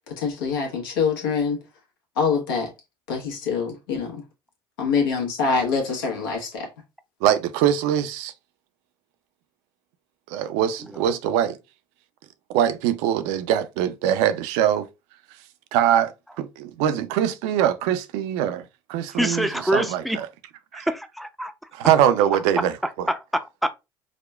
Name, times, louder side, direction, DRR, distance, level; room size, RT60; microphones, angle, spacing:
voice 1, 0.1-1.6 2.2-2.7 3.1-4.2 4.8-6.7, left 5 dB, 85° left, 1.1 m, -25 dB
voice 2, 7.2-8.3 10.3-11.6 12.5-14.9 15.7-16.1 16.4-18.6 18.9-20.3 20.7-20.9 21.7-23.1, right 10 dB, 70° right, 0.5 m, -22 dB
voice 3, 19.1-20.2 20.7-21.5 23.1-23.7, equal, ahead, 0.5 m, -25 dB
4.9 x 2.2 x 2.2 m
hypercardioid pair, 70°, 12 cm